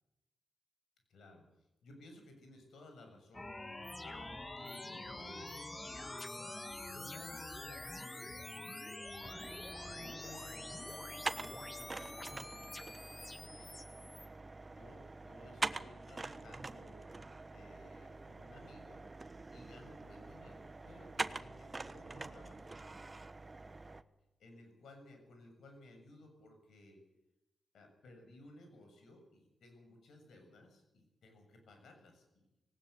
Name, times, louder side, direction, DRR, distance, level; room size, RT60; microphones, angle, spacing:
voice 1, 1.1-1.4 1.8-6.2 6.9-9.3 9.6-13.8 14.7-17.0 17.5-19.0 19.5-23.0 24.4-27.0 27.7-32.4, left 1 dB, 85° left, 5 dB, 6.9 m, -58 dB
sound 1, 3.3-14.3, left 2 dB, 20° left, 1.6 m, -46 dB
sound 2, 9.2-24.0, right 3 dB, 30° right, 1.2 m, -45 dB
18.5 x 18.5 x 8.2 m, 0.92 s
cardioid pair, 70°, 0 cm